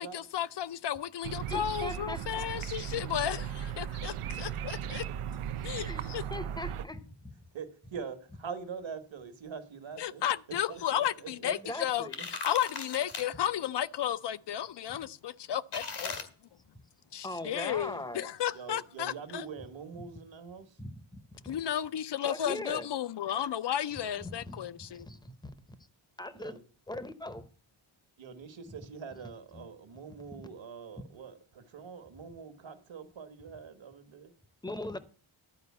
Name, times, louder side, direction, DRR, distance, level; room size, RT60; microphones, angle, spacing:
voice 1, 0.0-5.0 5.6-6.2 10.0-16.2 17.1-19.5 21.4-25.1, left 10 dB, 55° left, 0.5 m, -33 dB
sound 1, 1.2-6.9, right 9 dB, 85° right, 0.6 m, -37 dB
voice 2, 1.5-2.4 5.8-7.3 11.4-12.3 17.2-18.3 20.8-21.6 22.2-22.9 24.2-25.3 26.2-26.6 26.9-27.5 28.7-28.8 29.1-29.7 30.3-30.5 34.6-35.0, left 1 dB, 10° left, 0.7 m, -41 dB
voice 3, 4.5-5.2 7.5-10.2 10.7-11.5 12.0-12.1 18.5-20.8 26.3-26.6 28.2-34.3, right 6 dB, 65° right, 1.5 m, -44 dB
sound 2, 12.0-13.3 15.7-16.2, left 4 dB, 85° left, 2.2 m, -38 dB
11.5 x 5.1 x 8.3 m
wide cardioid pair, 160°, 49 cm